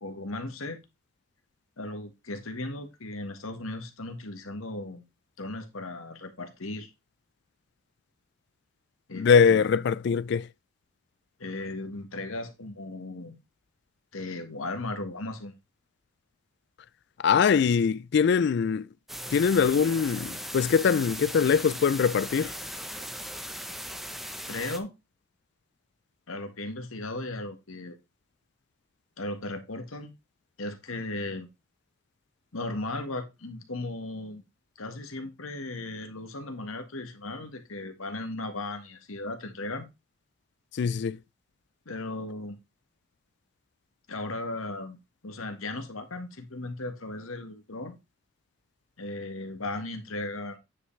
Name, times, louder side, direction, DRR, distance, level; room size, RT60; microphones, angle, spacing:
voice 1, 0.0-0.8 1.8-5.1 5.4-6.9 9.1-9.7 11.4-13.4 14.1-15.5 24.5-24.9 26.3-27.9 29.2-30.1 30.6-31.5 32.5-34.4 34.8-39.9 41.8-42.6 44.1-45.0 45.2-48.0 49.0-50.6, left 2 dB, 80° left, 1.5 m, -36 dB
voice 2, 9.1-10.5 17.2-18.9 19.3-22.5 40.7-41.2, left 6 dB, 55° left, 0.3 m, -22 dB
sound 1, 19.1-24.8, equal, ahead, 0.7 m, -38 dB
9.4 x 5.6 x 3.2 m
head